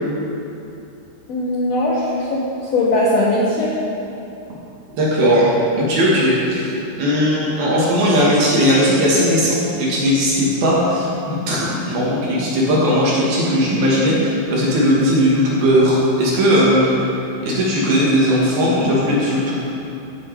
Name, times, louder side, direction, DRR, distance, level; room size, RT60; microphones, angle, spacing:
voice 1, 1.3-3.7, left 1 dB, 80° left, -5 dB, 1.5 m, -19 dB
voice 2, 5.0-17.0 17.4-19.6, equal, 65° right, -6 dB, 3.8 m, -17 dB
15.5 x 7.9 x 4.9 m, 2.8 s
omnidirectional pair, 4.8 m